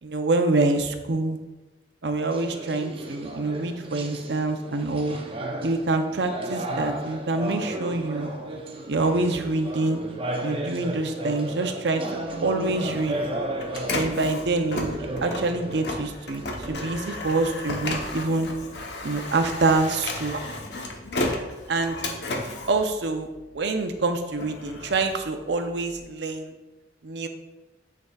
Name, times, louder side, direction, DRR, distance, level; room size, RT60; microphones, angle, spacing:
voice 1, 0.0-1.4 2.0-5.2 5.6-8.3 8.9-10.0 10.4-12.0 12.4-13.2 13.9-18.5 19.0-20.4 21.7-22.0 22.7-23.3 23.5-26.5 27.0-27.3, right 3 dB, 70° right, 6 dB, 0.6 m, -26 dB
sound 1, 2.3-17.0, right 1 dB, 30° right, 0.6 m, -34 dB
Printer, 12.3-23.7 24.1-26.0, left 2 dB, 65° left, 0.9 m, -33 dB
9.1 x 4.7 x 2.3 m, 1.1 s
head